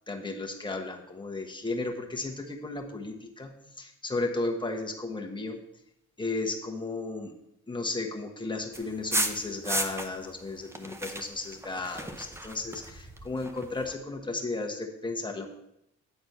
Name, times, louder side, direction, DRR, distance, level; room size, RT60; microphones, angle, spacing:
voice 1, 0.1-5.6 6.2-7.3 7.7-15.5, left 3 dB, 15° left, 1 dB, 1.3 m, -34 dB
sound 1, 8.7-10.3 10.6-13.9, right 1 dB, 10° right, 0.7 m, -34 dB
9.4 x 4.2 x 5.6 m, 0.81 s
cardioid pair, 90°, 30 cm